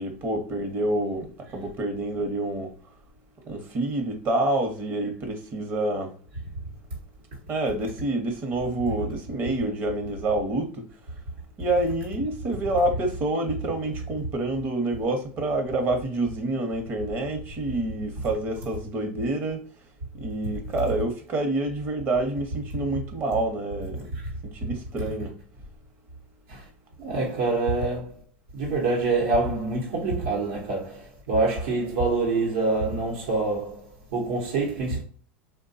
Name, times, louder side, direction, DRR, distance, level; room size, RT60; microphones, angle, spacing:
voice 1, 0.0-2.7 3.5-6.1 7.5-10.9 11.6-19.7 20.2-24.1 24.4-25.3, right 2 dB, 35° right, 0.8 m, -27 dB
voice 2, 27.0-28.1 28.5-35.0, right 3 dB, 75° right, 1.0 m, -26 dB
3.3 x 2.2 x 2.6 m
supercardioid pair, 115°, 6 cm